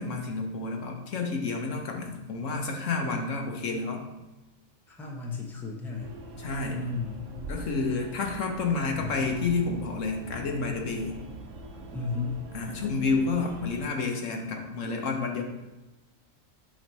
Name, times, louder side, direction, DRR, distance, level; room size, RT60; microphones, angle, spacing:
voice 1, 0.0-4.0 6.4-6.9 7.5-11.1 12.5-15.4, left 4 dB, 75° left, 2 dB, 1.3 m, -30 dB
voice 2, 4.9-6.2 6.7-7.3 8.7-9.5 11.9-12.4, left 4 dB, ahead, -1 dB, 0.7 m, -34 dB
sound 1, 6.0-13.9, right 2 dB, 75° right, 1.1 m, -43 dB
7.7 x 3.1 x 5.4 m, 1.1 s
omnidirectional pair, 1.3 m